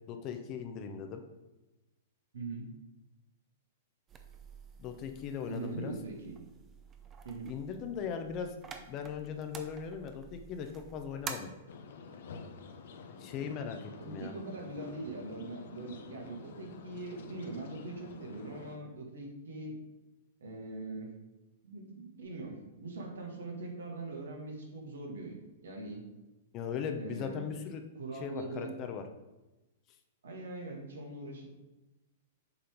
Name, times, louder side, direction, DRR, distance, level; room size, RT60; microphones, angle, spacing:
voice 1, 0.1-1.2 4.8-5.9 7.4-8.6 8.9-11.5 13.2-14.3 26.5-27.8 28.1-29.0, left 7 dB, 35° left, 6 dB, 0.8 m, -39 dB
voice 2, 2.3-2.7 5.5-6.4 7.2-7.5 13.4-13.5 14.0-19.8 20.4-21.2 21.6-26.0 26.9-27.5 28.0-28.8 30.2-31.5, right 2 dB, 80° right, 0 dB, 2.0 m, -42 dB
sound 1, 4.1-11.3, right 6 dB, 25° right, 0.8 m, -49 dB
sound 2, 11.7-18.8, left 5 dB, 65° left, 0.8 m, -49 dB
7.1 x 3.8 x 5.1 m, 1.0 s
hypercardioid pair, 120°, 0 cm